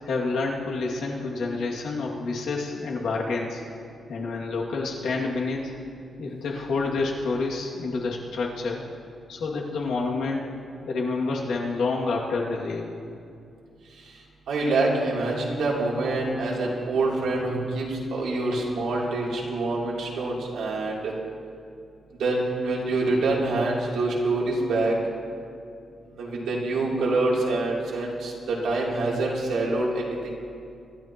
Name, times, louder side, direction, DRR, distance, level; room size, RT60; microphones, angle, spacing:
voice 1, 0.0-3.6 4.1-5.7 6.2-8.8 9.3-10.5 10.9-12.9, left 3 dB, 80° left, -2 dB, 2.4 m, -28 dB
voice 2, 14.5-21.1 22.2-24.9 26.2-30.3, right 2 dB, 90° right, -4 dB, 3.2 m, -26 dB
24.5 x 12.0 x 3.0 m, 2.5 s
wide cardioid pair, 160°, 0 cm